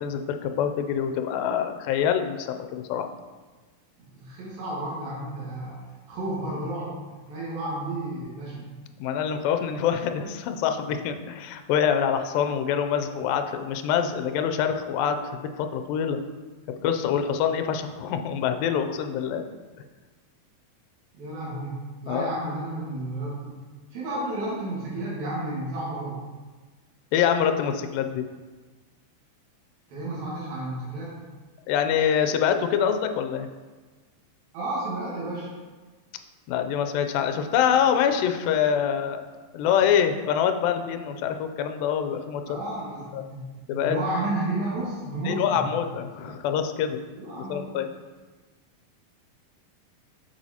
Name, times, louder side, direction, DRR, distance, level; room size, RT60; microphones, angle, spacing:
voice 1, 0.0-3.1 9.0-16.2 16.8-19.5 22.1-22.3 27.1-28.3 31.7-33.5 36.5-39.2 39.5-42.4 43.1-43.2 43.7-44.0 45.3-47.0 47.5-47.9, left 8 dB, 85° left, 7 dB, 2.3 m, -25 dB
voice 2, 4.0-8.7 21.1-23.6 23.9-26.2 29.9-31.1 34.5-35.5 42.5-43.4 43.7-45.6 47.2-47.7, right 2 dB, 90° right, -7 dB, 3.4 m, -32 dB
7.8 x 6.9 x 2.8 m, 1.3 s
omnidirectional pair, 4.0 m